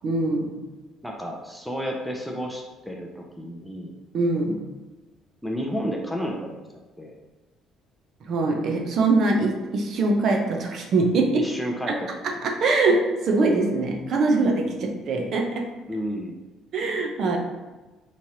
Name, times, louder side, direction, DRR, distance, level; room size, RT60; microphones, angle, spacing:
voice 1, 0.0-0.5 4.1-4.6 8.2-11.5 11.9-12.0 12.2-15.7 16.7-17.4, right 3 dB, 50° right, 2 dB, 0.6 m, -23 dB
voice 2, 1.0-4.0 5.4-6.6 7.0-7.1 11.3-12.1 15.0-15.1 15.9-16.4, equal, ahead, -1 dB, 0.4 m, -31 dB
5.1 x 3.1 x 2.8 m, 1.2 s
cardioid pair, 155°, 0 cm